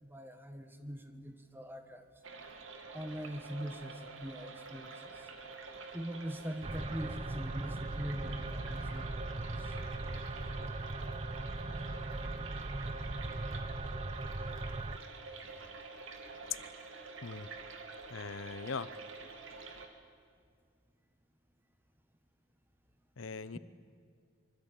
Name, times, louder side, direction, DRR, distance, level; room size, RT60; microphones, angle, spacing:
voice 1, 0.0-2.1 2.9-5.1 5.9-9.4, equal, 10° right, 8 dB, 1.5 m, -42 dB
sound 1, 2.2-19.9, right 4 dB, 70° right, 2.5 m, -48 dB
sound 2, 6.6-15.0, right 2 dB, 30° right, 0.7 m, -39 dB
voice 2, 18.1-18.9 23.2-23.6, left 4 dB, 70° left, 15 dB, 0.8 m, -40 dB
24.5 x 24.0 x 9.1 m, 2.1 s
head